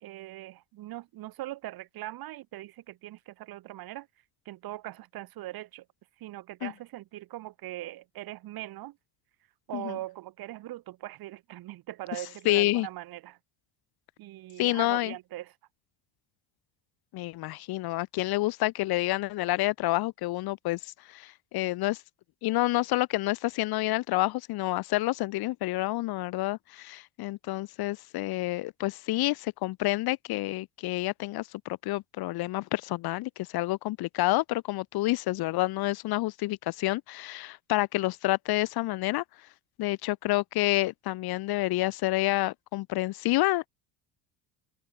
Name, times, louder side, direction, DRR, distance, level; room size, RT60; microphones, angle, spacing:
voice 1, 0.0-4.1 4.4-5.8 6.2-9.0 9.7-13.4 14.2-15.5, right 16 dB, 50° right, 1.5 m, -41 dB
voice 2, 12.4-12.9 14.6-15.1 17.1-22.0 22.4-39.2 39.8-43.7, left 18 dB, 50° left, 0.9 m, -28 dB
cardioid pair, 140°, 46 cm